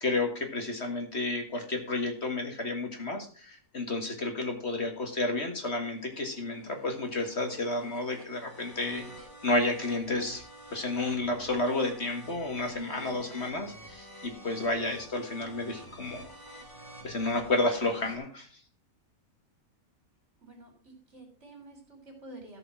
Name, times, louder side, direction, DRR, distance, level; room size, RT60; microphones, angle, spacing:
voice 1, 0.0-9.0 9.4-10.4 10.7-16.3 17.0-18.5, left 2 dB, 45° left, 4 dB, 1.9 m, -31 dB
sound 1, 5.1-18.2, right 1 dB, 15° left, 2.4 m, -49 dB
voice 2, 12.7-13.4 20.4-22.6, right 2 dB, 50° right, 2 dB, 4.1 m, -50 dB
14.5 x 5.4 x 5.7 m, 0.43 s
omnidirectional pair, 1.5 m